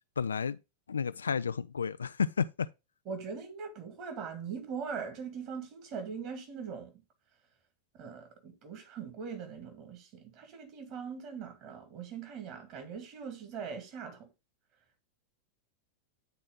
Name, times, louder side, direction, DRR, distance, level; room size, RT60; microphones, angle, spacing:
voice 1, 0.2-0.6 0.9-2.7, left 6 dB, 70° left, 0.4 m, -31 dB
voice 2, 3.1-6.9 7.9-14.3, right 6 dB, 40° right, 2.1 m, -41 dB
9.1 x 4.3 x 3.7 m
figure-of-eight pair, 90°, 0 cm